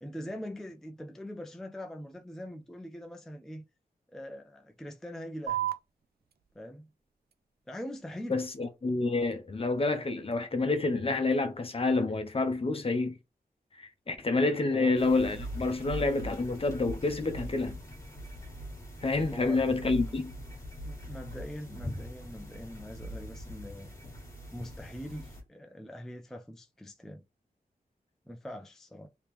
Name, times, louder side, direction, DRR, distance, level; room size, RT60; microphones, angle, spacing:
voice 1, 0.0-3.6 4.1-5.7 6.6-6.9 7.7-8.4 14.7-14.9 19.3-20.2 20.8-23.9 24.5-27.2 28.3-29.1, equal, 5° left, 0.4 m, -42 dB
sound 1, 5.5-12.5, right 13 dB, 90° right, 0.4 m, -42 dB
voice 2, 8.3-13.2 13.8-17.8 19.0-20.3, left 3 dB, 40° left, 0.7 m, -28 dB
sound 2, 15.0-25.4, equal, 20° left, 1.6 m, -42 dB
3.4 x 2.9 x 3.0 m
wide cardioid pair, 130°, 16 cm